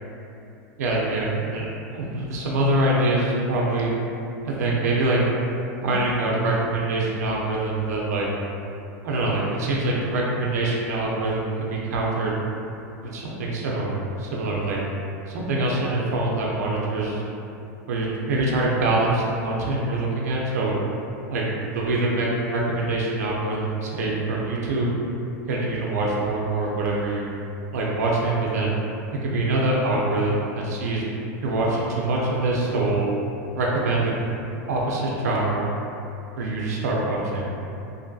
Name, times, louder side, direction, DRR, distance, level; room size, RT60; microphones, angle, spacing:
voice 1, 0.8-3.9 4.4-5.2 5.8-8.3 9.0-12.3 13.1-14.8 15.3-17.2 17.9-20.8 21.3-21.4 21.7-24.9 25.5-27.3 27.7-28.7 29.1-31.1 31.4-33.1 33.5-35.7 36.4-37.5, right 2 dB, 90° right, -4 dB, 0.4 m, -24 dB
2.6 x 2.5 x 2.3 m, 2.7 s
supercardioid pair, 120°, 9 cm